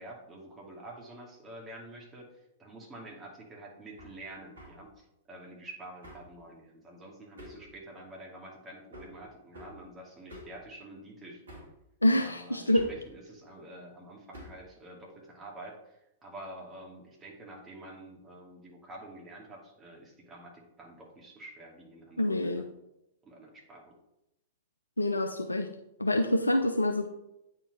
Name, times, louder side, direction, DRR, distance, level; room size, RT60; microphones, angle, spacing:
voice 1, 0.0-11.4 12.2-22.7 23.2-23.9, right 1 dB, 20° right, -2 dB, 2.3 m, -48 dB
Hammer, 4.0-4.2 4.6-4.8 6.0-6.3 7.4-7.7 8.9-9.2 9.5-9.8 10.3-10.6 11.5-11.8 12.8-13.1 14.3-14.7, equal, 75° right, 2.2 m, -47 dB
voice 2, 12.0-12.8 22.2-22.7 25.0-25.7 26.0-27.1, left 1 dB, 90° left, 5 dB, 0.5 m, -26 dB
8.7 x 4.7 x 4.2 m, 0.87 s
figure-of-eight pair, 100°, 0 cm